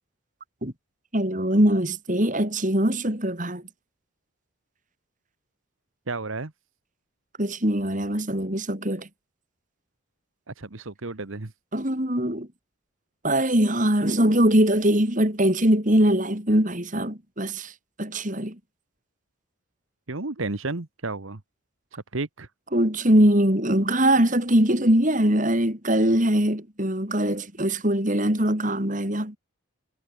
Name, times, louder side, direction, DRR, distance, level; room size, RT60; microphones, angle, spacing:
voice 1, 1.1-3.6 7.4-9.1 11.7-12.5 13.2-17.7 18.0-18.6 22.7-29.4, right 1 dB, 35° right, 4.0 m, -22 dB
voice 2, 6.1-6.5 10.5-11.5 20.1-21.4 21.9-22.5, right 3 dB, 70° right, 1.3 m, -32 dB
head